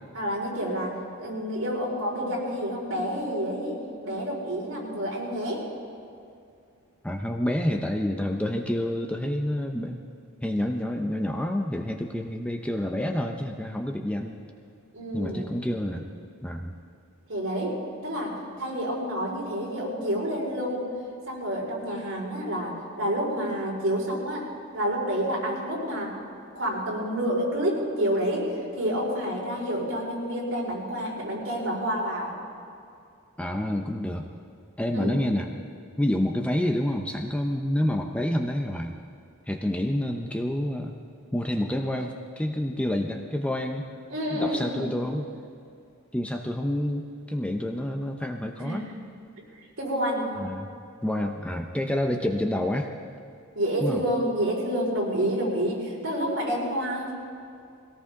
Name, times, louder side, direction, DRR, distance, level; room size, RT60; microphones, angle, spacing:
voice 1, 0.1-3.8 4.0-5.6 14.9-15.6 17.3-20.9 21.3-24.5 24.7-26.2 26.5-32.3 34.9-35.2 44.1-44.9 48.6-49.0 49.8-50.3 53.5-57.1, equal, 60° right, -4 dB, 4.8 m, -29 dB
voice 2, 7.0-10.0 10.4-14.4 15.1-16.1 16.4-16.8 33.4-34.2 34.8-35.5 36.0-39.0 39.5-41.0 41.3-43.9 44.3-45.3 46.1-48.8 50.4-50.7 51.0-52.9 53.8-54.0, left 1 dB, 5° left, 3 dB, 0.6 m, -28 dB
22.0 x 17.5 x 3.7 m, 2.5 s
head